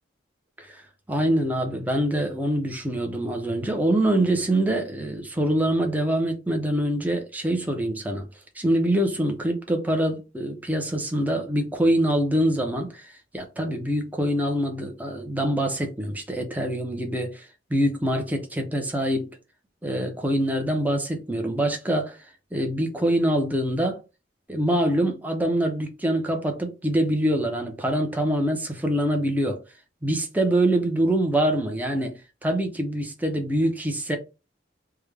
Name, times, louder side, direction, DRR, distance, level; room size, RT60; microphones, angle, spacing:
voice 1, 1.1-8.3 8.6-19.3 19.8-22.2 22.5-24.0 24.5-29.6 30.0-34.2, right 1 dB, 10° right, 0.5 m, -25 dB
3.5 x 2.0 x 3.3 m
head